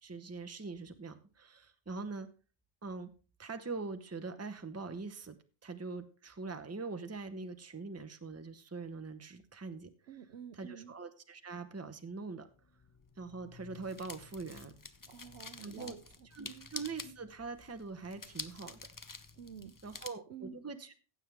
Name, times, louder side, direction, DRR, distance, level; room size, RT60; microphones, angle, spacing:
voice 1, 0.0-2.3 2.8-3.1 3.4-5.4 5.6-10.2 10.5-12.5 13.2-14.7 15.6-16.0 16.2-18.8 19.8-20.9, right 4 dB, 15° right, 0.8 m, -43 dB
voice 2, 10.1-10.9 15.1-16.0 16.5-16.7 19.4-19.7 20.3-20.6, right 8 dB, 65° right, 0.9 m, -49 dB
sound 1, 12.5-20.1, left 3 dB, 25° left, 0.4 m, -49 dB
15.5 x 7.5 x 3.4 m
omnidirectional pair, 1.2 m